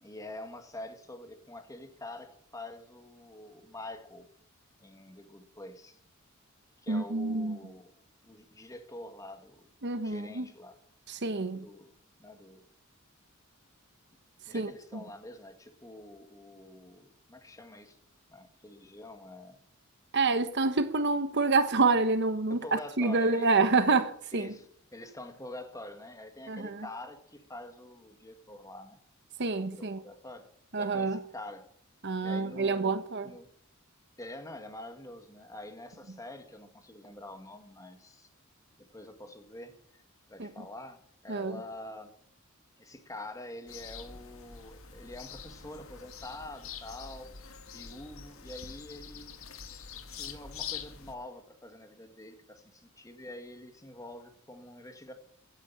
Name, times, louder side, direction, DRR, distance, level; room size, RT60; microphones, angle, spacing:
voice 1, 0.0-4.3 4.8-6.0 6.8-8.0 8.2-9.6 10.0-10.8 11.5-11.9 12.2-12.6 14.5-18.0 18.3-19.6 22.5-23.5 24.3-29.0 29.6-30.5 30.8-31.7 32.2-33.5 34.2-38.3 38.9-39.8 40.3-42.1 42.8-47.3 47.7-49.3 50.1-55.1, left 1 dB, 15° left, 2.0 m, -46 dB
voice 2, 6.9-7.6 9.8-10.4 11.1-11.7 14.5-14.7 20.1-24.5 26.5-26.8 29.4-30.0 30.7-31.2 32.0-33.3 40.4-40.5 41.3-41.6, right 3 dB, 55° right, 1.1 m, -27 dB
sound 1, 43.7-51.1, left 7 dB, 75° left, 2.0 m, -45 dB
15.5 x 9.9 x 7.4 m
head